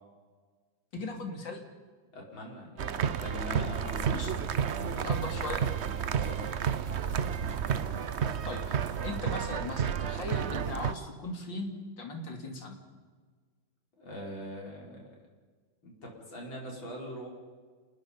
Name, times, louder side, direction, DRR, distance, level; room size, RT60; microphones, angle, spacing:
voice 1, 0.9-1.6 4.1-4.3 5.0-5.6 8.5-8.8 9.0-12.8, left 2 dB, 70° left, 3 dB, 3.7 m, -38 dB
voice 2, 2.1-5.2 5.5-5.7 6.0-6.4 7.0-7.3 14.0-15.1 15.8-17.3, equal, 90° left, -1 dB, 6.0 m, -42 dB
sound 1, 2.8-10.9, right 8 dB, 55° right, 0.7 m, -31 dB
sound 2, 3.7-9.2, equal, 10° left, 2.6 m, -50 dB
28.5 x 19.5 x 5.5 m, 1.5 s
omnidirectional pair, 2.1 m